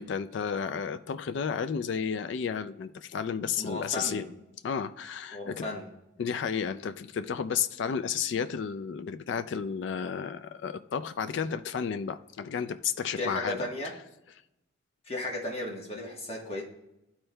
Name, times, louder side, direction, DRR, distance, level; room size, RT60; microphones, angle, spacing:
voice 1, 0.0-4.2 4.6-5.7 6.2-13.7, left 6 dB, 65° left, 0.3 m, -32 dB
voice 2, 3.6-4.3 5.3-5.9 13.2-13.9 15.0-16.6, left 1 dB, 30° left, 1.2 m, -35 dB
12.5 x 4.4 x 2.2 m
head